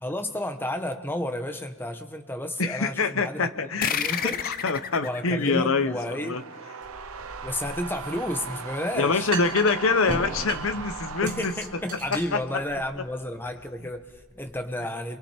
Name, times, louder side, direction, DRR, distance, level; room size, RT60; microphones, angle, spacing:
voice 1, 0.0-4.4 5.0-6.4 7.4-9.4 11.2-15.2, left 1 dB, 10° left, 6 dB, 1.1 m, -32 dB
voice 2, 2.6-6.4 8.9-11.5 12.1-12.6, left 4 dB, 70° left, 11 dB, 0.9 m, -25 dB
sound 1, 3.8-6.9, left 7 dB, 45° left, 0.7 m, -32 dB
sound 2, 5.4-12.4, right 5 dB, 85° right, 0.8 m, -39 dB
sound 3, 6.8-14.6, right 3 dB, 40° right, 3.5 m, -38 dB
29.0 x 23.0 x 4.5 m, 1.3 s
head